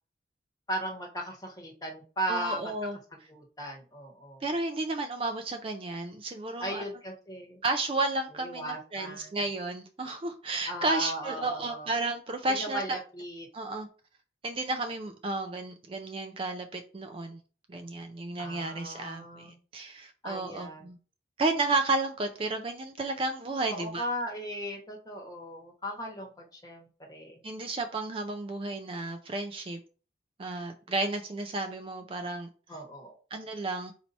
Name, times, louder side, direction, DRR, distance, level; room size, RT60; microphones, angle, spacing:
voice 1, 0.7-2.6 3.3-4.4 6.6-7.6 8.4-9.4 10.7-11.9 12.6-13.5 18.4-19.6 20.2-20.9 23.6-27.4 32.7-33.1, equal, 20° left, 1.1 m, -37 dB
voice 2, 2.3-3.0 4.4-6.8 7.6-12.8 13.5-13.9 14.4-17.4 17.7-21.0 21.4-24.0 27.4-29.8 30.4-32.5 33.3-33.9, right 2 dB, 30° right, 0.4 m, -32 dB
4.5 x 2.7 x 4.1 m
head